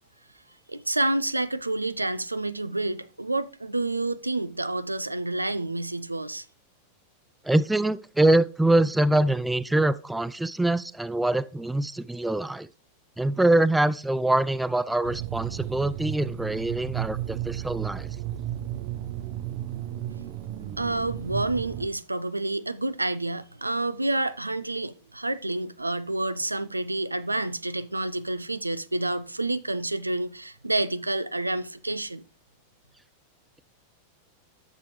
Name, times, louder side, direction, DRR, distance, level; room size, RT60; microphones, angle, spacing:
voice 1, 0.7-6.5 20.8-32.2, right 2 dB, 85° right, 0.4 m, -29 dB
voice 2, 7.4-12.7 13.2-18.1, right 1 dB, 5° right, 0.4 m, -24 dB
sound 1, 15.0-21.9, right 12 dB, 45° right, 0.7 m, -33 dB
11.0 x 7.2 x 3.2 m
figure-of-eight pair, 90°, 0 cm